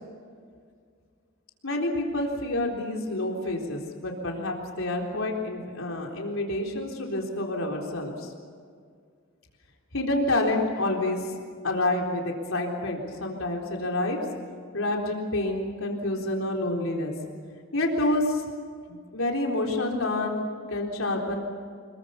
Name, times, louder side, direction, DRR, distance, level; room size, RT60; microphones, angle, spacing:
voice 1, 1.6-8.3 9.9-11.3 11.6-14.2 14.7-17.1 17.7-18.5 18.9-21.4, left 2 dB, 70° left, 0 dB, 3.9 m, -28 dB
27.0 x 22.5 x 7.0 m, 2.1 s
head